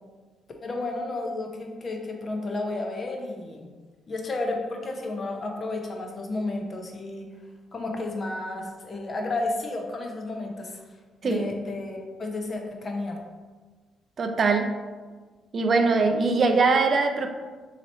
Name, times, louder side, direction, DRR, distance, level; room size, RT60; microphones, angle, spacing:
voice 1, 0.6-3.7 4.1-7.3 7.7-10.8 11.2-13.2, left 2 dB, 40° left, 2 dB, 0.6 m, -32 dB
voice 2, 14.2-14.7 15.5-17.3, right 4 dB, 45° right, 5 dB, 0.4 m, -22 dB
3.0 x 2.8 x 4.1 m, 1.4 s
cardioid pair, 90°, 0 cm